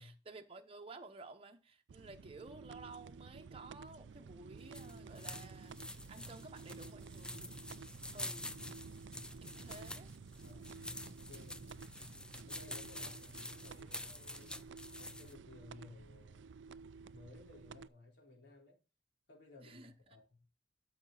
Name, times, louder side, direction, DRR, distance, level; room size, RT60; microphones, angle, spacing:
voice 1, 0.0-5.8 6.1-7.5 8.1-8.5 9.4-10.1 19.6-19.9, right 3 dB, 30° right, 1.0 m, -53 dB
sound 1, 1.9-17.9, right 5 dB, 75° right, 0.4 m, -53 dB
sound 2, 4.6-15.3, left 1 dB, 5° left, 0.4 m, -48 dB
voice 2, 10.4-10.8 11.0-11.7 12.5-14.6 15.0-16.5 17.1-18.8 19.3-20.5, left 2 dB, 70° left, 3.9 m, -58 dB
12.5 x 6.0 x 3.9 m
head